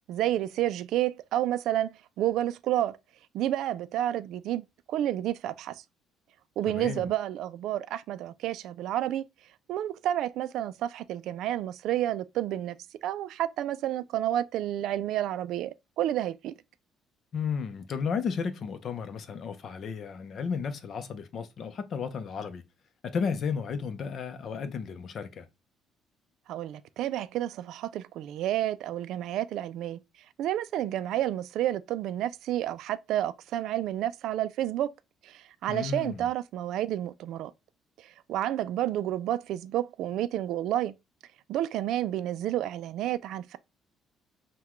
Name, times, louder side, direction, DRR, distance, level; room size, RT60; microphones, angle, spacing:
voice 1, 0.1-3.0 3.3-5.8 6.6-9.2 9.7-16.5 26.5-30.0 30.4-34.9 35.2-37.5 38.0-40.9 41.5-43.6, right 12 dB, 70° right, 0.3 m, -30 dB
voice 2, 6.7-7.1 17.3-22.6 23.0-25.5 35.7-36.3, left 6 dB, 45° left, 0.6 m, -33 dB
5.7 x 2.2 x 3.1 m
cardioid pair, 140°, 0 cm